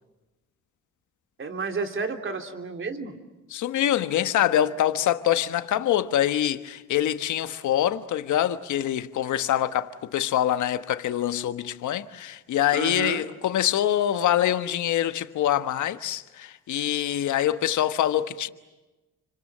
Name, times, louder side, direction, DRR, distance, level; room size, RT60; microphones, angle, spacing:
voice 1, 1.4-3.1 12.7-13.2, right 4 dB, 40° right, 3.3 m, -31 dB
voice 2, 3.5-18.5, left 11 dB, 75° left, 1.3 m, -25 dB
29.0 x 25.5 x 7.5 m
cardioid pair, 90°, 30 cm